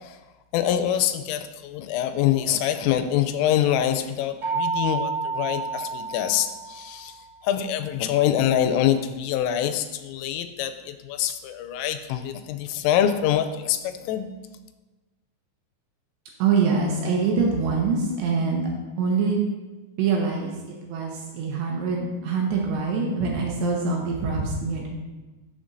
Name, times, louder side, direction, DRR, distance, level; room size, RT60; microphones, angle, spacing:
voice 1, 0.5-14.3, left 10 dB, 85° left, 9 dB, 3.1 m, -25 dB
sound 1, 4.4-7.2, right 4 dB, 30° right, 2.5 m, -29 dB
voice 2, 16.4-18.7 19.0-19.4 20.0-20.5 20.8-24.9, right 4 dB, 75° right, -1 dB, 2.8 m, -24 dB
12.5 x 6.6 x 2.6 m, 1.2 s
omnidirectional pair, 5.8 m